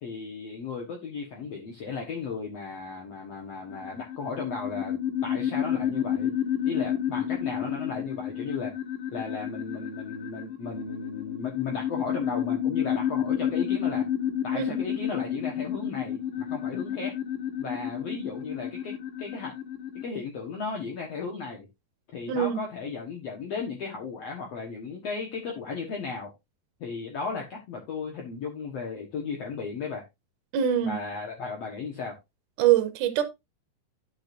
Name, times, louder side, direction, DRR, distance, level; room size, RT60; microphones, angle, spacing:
voice 1, 0.0-4.9 5.2-6.3 6.6-8.7 9.1-14.0 14.4-17.1 17.6-19.5 20.0-21.7 22.1-26.3 26.8-30.0 30.8-32.2, left 4 dB, 55° left, 2.1 m, -35 dB
sound 1, 3.7-20.0, left 10 dB, 75° left, 3.1 m, -30 dB
voice 2, 22.3-22.6 30.5-31.0 32.6-33.2, right 10 dB, 70° right, 2.4 m, -23 dB
11.5 x 6.0 x 2.6 m
omnidirectional pair, 4.0 m